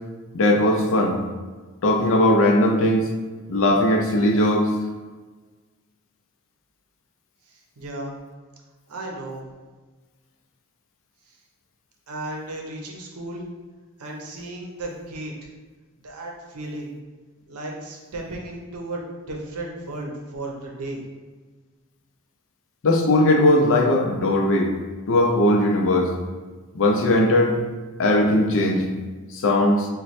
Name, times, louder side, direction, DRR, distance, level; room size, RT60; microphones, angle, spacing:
voice 1, 0.3-1.2 1.8-3.1 3.5-4.7 22.8-24.7 25.1-26.1 26.7-27.6 28.0-28.9 29.3-29.9, left 1 dB, 60° left, 2 dB, 0.5 m, -19 dB
voice 2, 7.5-8.1 8.9-9.4 11.3-11.4 12.1-13.4 14.0-15.5 16.0-17.0 17.5-21.0, right 2 dB, 80° right, 0 dB, 0.7 m, -34 dB
3.0 x 2.2 x 4.1 m, 1.3 s
head